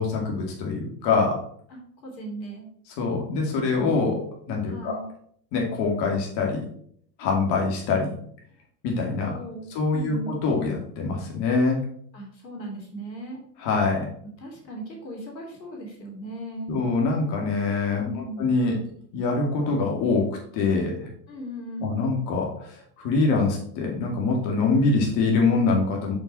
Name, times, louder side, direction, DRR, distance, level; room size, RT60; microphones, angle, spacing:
voice 1, 0.0-1.4 3.0-5.0 5.5-6.7 7.2-8.1 8.8-9.3 9.7-11.8 13.6-14.1 16.7-18.8 19.1-21.1 21.8-26.2, left 3 dB, 50° left, 0 dB, 2.3 m, -24 dB
voice 2, 1.7-2.7 4.6-5.1 9.3-10.4 12.1-13.4 14.4-16.8 18.0-18.5 21.3-22.0, right 1 dB, 90° left, 0 dB, 2.9 m, -37 dB
6.7 x 6.0 x 4.2 m, 0.63 s
hypercardioid pair, 105°, 50 cm